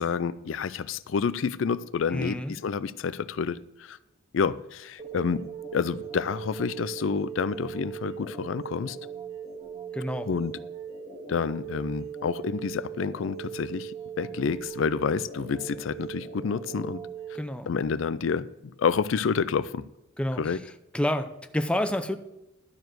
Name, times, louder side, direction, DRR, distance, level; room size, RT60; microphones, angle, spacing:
voice 1, 0.0-4.0 4.3-5.4 5.7-9.0 10.3-10.6 11.3-17.0 17.7-19.8 20.4-20.6, left 5 dB, 70° left, 16 dB, 0.4 m, -29 dB
voice 2, 2.1-2.5 9.9-10.3 17.3-17.7 20.2-20.6 20.9-22.2, left 1 dB, 5° left, 8 dB, 0.6 m, -29 dB
sound 1, 5.0-17.4, right 7 dB, 30° right, 1.6 m, -39 dB
12.5 x 4.7 x 7.8 m, 0.96 s
head